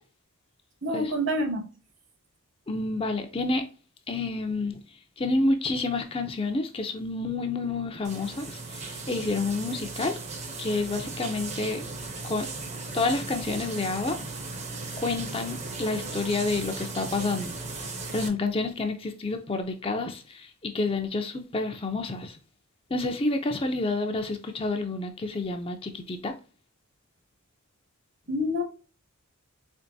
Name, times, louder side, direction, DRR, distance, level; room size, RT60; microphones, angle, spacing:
voice 1, 0.8-1.6 28.3-28.6, equal, 55° right, 1.3 m, -27 dB
voice 2, 2.7-3.6 4.1-4.8 5.2-10.2 10.6-11.9 12.2-12.5 12.9-14.2 15.0-17.9 18.1-22.4 22.9-26.3, left 3 dB, 25° left, 0.5 m, -29 dB
sound 1, 8.0-18.3, right 3 dB, 30° right, 0.7 m, -37 dB
4.5 x 3.0 x 2.6 m
head